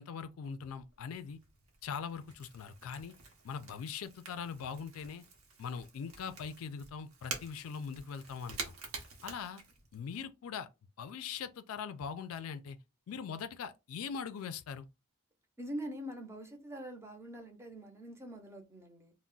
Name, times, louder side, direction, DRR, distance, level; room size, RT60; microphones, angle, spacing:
voice 1, 0.0-1.4 1.8-3.1 3.4-5.2 5.6-8.7 9.2-9.6 9.9-10.7 11.0-12.8 13.1-14.9, left 6 dB, 85° left, 0.4 m, -41 dB
Crackle / Crack, 0.6-10.2, right 4 dB, 85° right, 0.8 m, -48 dB
voice 2, 15.6-19.1, equal, 15° right, 0.6 m, -44 dB
2.3 x 2.1 x 3.8 m
head